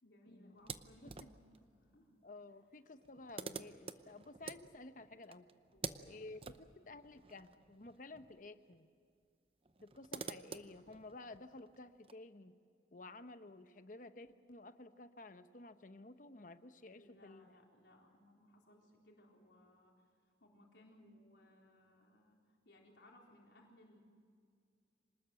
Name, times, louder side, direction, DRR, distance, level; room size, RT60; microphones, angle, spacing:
voice 1, 0.0-2.2 5.7-6.2 16.9-20.0 20.4-22.4 22.7-24.0, left 1 dB, 85° left, -1 dB, 3.9 m, -64 dB
sound 1, 0.6-1.6 2.6-2.7 2.9-8.5 8.7-8.8 9.6-12.1, right 5 dB, 30° right, 0.7 m, -49 dB
voice 2, 2.2-5.5 6.1-8.9 9.8-12.5 12.9-17.5, left 2 dB, 50° left, 10 dB, 1.0 m, -53 dB
26.0 x 19.5 x 7.8 m, 2.3 s
head